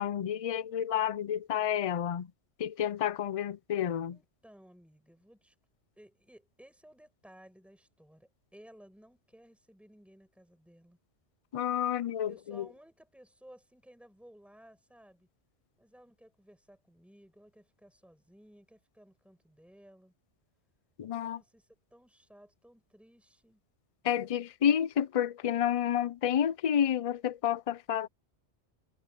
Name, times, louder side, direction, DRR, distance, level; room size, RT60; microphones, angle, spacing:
voice 1, 0.0-2.3 2.6-4.2 11.5-12.6 21.0-21.4 24.0-28.1, left 9 dB, 65° left, 0.3 m, -30 dB
voice 2, 4.1-5.5 6.0-11.0 12.2-15.3 15.8-20.1 21.2-23.6, equal, ahead, 6.7 m, -57 dB
omnidirectional pair, 1.2 m